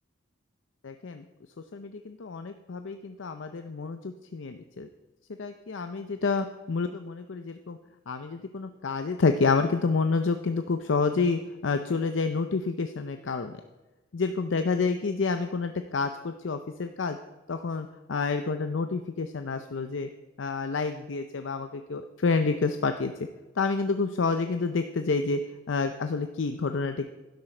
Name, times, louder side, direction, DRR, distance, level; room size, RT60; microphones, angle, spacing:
voice 1, 0.8-1.2 1.7-4.9 5.4-7.8 8.1-13.5 14.1-17.2 17.5-20.1 20.4-23.1 23.6-25.4 25.7-27.1, left 4 dB, 85° left, 8 dB, 0.6 m, -28 dB
12.0 x 10.5 x 4.4 m, 1.1 s
head